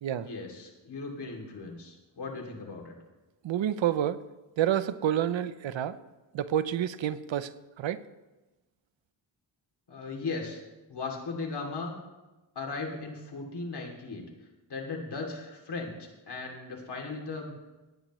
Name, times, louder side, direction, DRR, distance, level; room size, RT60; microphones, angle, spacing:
voice 1, 0.1-2.9 9.9-10.6 10.9-11.9 12.5-14.2 14.7-16.0 16.3-17.5, left 3 dB, 60° left, 0 dB, 2.7 m, -37 dB
voice 2, 3.4-4.2 4.6-6.0 6.3-8.0, right 10 dB, 80° right, 14 dB, 0.7 m, -29 dB
17.5 x 10.0 x 3.1 m, 1.1 s
wide cardioid pair, 95°, 45 cm